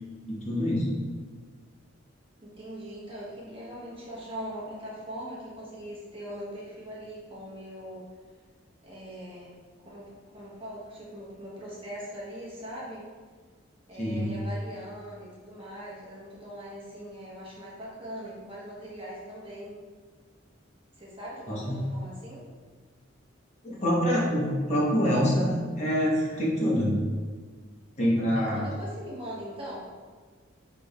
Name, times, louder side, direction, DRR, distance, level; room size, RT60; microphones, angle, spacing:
voice 1, 0.3-0.9 14.0-14.3 21.5-21.8 23.6-27.0 28.0-28.6, equal, 35° left, -5 dB, 1.0 m, -25 dB
voice 2, 2.4-8.0 8.8-9.6 9.8-13.1 13.9-19.8 21.0-22.4 28.5-29.8, equal, 25° right, -6 dB, 1.1 m, -41 dB
6.0 x 3.4 x 2.3 m, 1.5 s
head